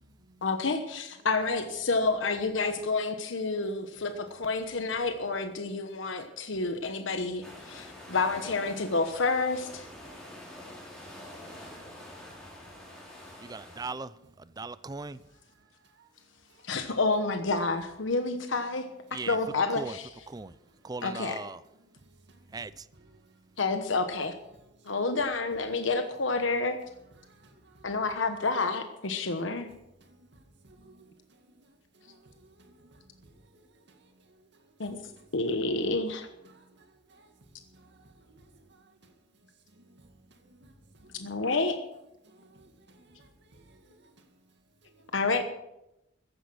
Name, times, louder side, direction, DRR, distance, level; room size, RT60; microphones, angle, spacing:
voice 1, 0.4-9.9 16.6-20.1 21.0-21.4 23.6-24.3 24.8-26.8 27.8-29.7 34.8-35.0 35.3-36.3 41.1-41.8 45.1-45.4, left 3 dB, 85° left, 1.2 m, -29 dB
sound 1, 7.4-13.9, left 1 dB, 5° left, 4.9 m, -46 dB
voice 2, 13.4-15.2 19.1-19.4 19.7-20.0 20.3-20.5 20.8-21.6 22.5-22.9, right 3 dB, 20° right, 0.5 m, -39 dB
voice 3, 30.6-31.1 32.1-32.9 36.5-36.8 37.1-37.2 38.3-38.4 39.8-39.9 40.5-40.7 41.0-41.2 42.3-42.6 43.0-43.6, right 2 dB, 65° right, 2.2 m, -57 dB
14.5 x 10.5 x 6.3 m
head